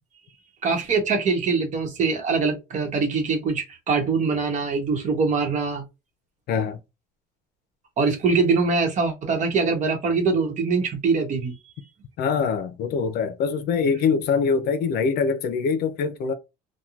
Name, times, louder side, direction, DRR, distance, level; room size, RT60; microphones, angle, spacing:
voice 1, 0.6-5.8 8.0-11.6, right 4 dB, 45° right, 1.0 m, -23 dB
voice 2, 6.5-6.8 12.2-16.3, left 5 dB, 65° left, 0.6 m, -23 dB
3.0 x 2.2 x 2.4 m
cardioid pair, 120°, 18 cm